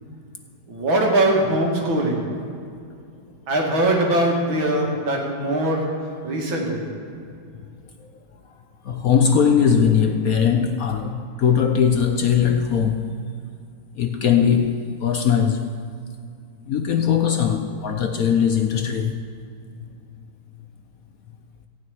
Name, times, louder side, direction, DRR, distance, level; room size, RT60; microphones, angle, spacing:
voice 1, 0.7-2.4 3.5-7.0, right 1 dB, 90° right, 2.9 m, -22 dB
voice 2, 8.8-13.1 13.9-15.7 16.7-19.2, left 7 dB, 65° left, 0.9 m, -20 dB
15.0 x 6.4 x 9.3 m
omnidirectional pair, 2.1 m